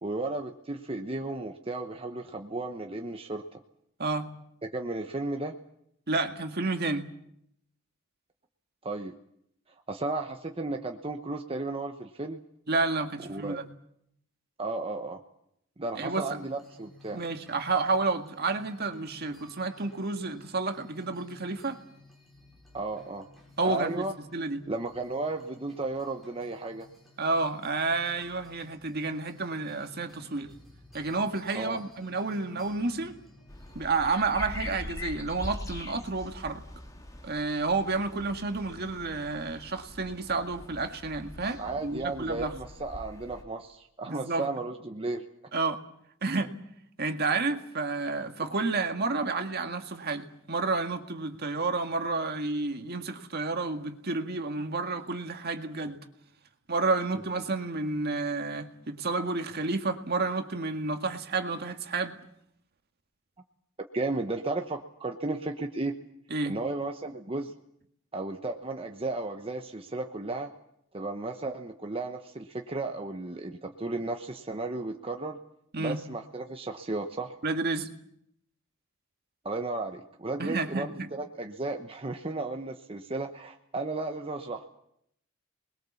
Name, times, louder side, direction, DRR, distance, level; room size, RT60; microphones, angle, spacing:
voice 1, 0.0-3.4 4.6-5.6 8.8-9.1 9.9-12.4 13.2-13.6 14.6-15.2 15.8-17.2 22.7-23.3 23.6-24.1 24.7-26.9 31.5-31.8 41.6-45.2 63.9-66.0 66.5-67.5 68.1-70.5 70.9-75.4 75.8-77.3 79.4-84.7, right 2 dB, 30° right, 4 dB, 1.1 m, -34 dB
voice 2, 4.0-4.3 6.1-7.1 12.7-13.7 16.0-16.2 17.1-21.8 23.6-24.0 24.3-24.7 27.2-30.5 30.9-33.2 33.8-36.6 37.2-42.5 44.1-44.5 45.5-45.8 46.2-46.5 47.0-56.0 56.7-62.2 66.3-66.6 75.7-76.0 77.4-77.9 80.4-81.1, right 3 dB, 55° right, 6 dB, 1.9 m, -30 dB
sound 1, 16.3-34.5, left 1 dB, ahead, 6.9 m, -56 dB
sound 2, 33.5-43.4, left 1 dB, 15° left, 2.7 m, -43 dB
27.5 x 21.5 x 7.2 m, 0.74 s
head